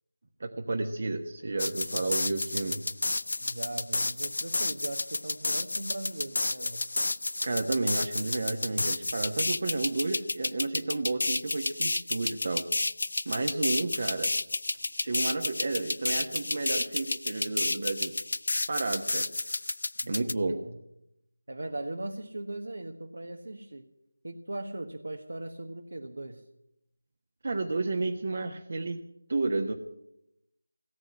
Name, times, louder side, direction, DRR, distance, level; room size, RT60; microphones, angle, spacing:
voice 1, 0.4-2.8 7.4-12.6 13.2-14.3 15.0-18.1 18.5-19.3 20.1-20.6 27.4-29.0 29.3-29.7, right 3 dB, 50° right, 4 dB, 1.2 m, -31 dB
sound 1, 1.6-20.3, left 2 dB, 65° left, 0.5 m, -31 dB
voice 2, 3.4-6.9 20.0-20.8 21.5-23.9 24.2-26.4, right 2 dB, 80° right, 5 dB, 1.4 m, -39 dB
17.5 x 8.1 x 9.9 m, 0.83 s
figure-of-eight pair, 165°, 0 cm